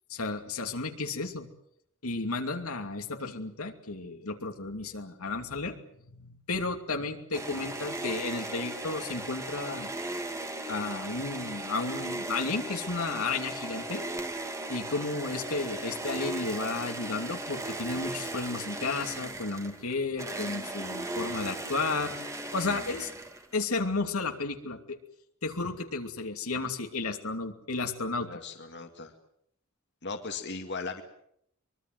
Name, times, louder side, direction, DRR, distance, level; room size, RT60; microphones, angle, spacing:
voice 1, 0.1-1.5 2.0-5.8 6.1-9.9 10.7-14.0 14.7-22.1 22.5-23.1 23.5-25.0 25.4-28.3, left 3 dB, 75° left, 5 dB, 2.7 m, -33 dB
sound 1, 7.3-23.6, right 1 dB, 15° right, 2.2 m, -37 dB
voice 2, 28.2-29.1 30.0-31.0, left 4 dB, 50° left, 5 dB, 2.3 m, -38 dB
24.0 x 22.5 x 7.8 m, 0.71 s
head